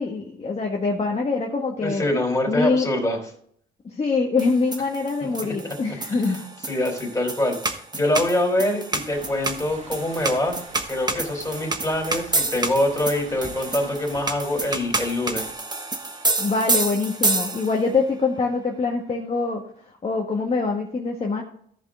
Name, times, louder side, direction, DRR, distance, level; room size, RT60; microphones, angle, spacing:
voice 1, 0.0-2.0 2.5-2.9 3.8-6.4 16.4-19.6 20.0-21.4, left 4 dB, 30° left, -1 dB, 1.5 m, -24 dB
voice 2, 1.8-3.2 5.4-5.7 6.1-6.4 6.7-10.6 10.9-15.5, left 1 dB, 15° left, 1 dB, 3.9 m, -25 dB
sound 1, 4.4-17.9, right 2 dB, 20° right, 1.2 m, -28 dB
sound 2, 9.1-15.5, right 2 dB, 40° right, 2.5 m, -44 dB
14.0 x 5.2 x 3.7 m, 0.63 s
cardioid pair, 90°, 20 cm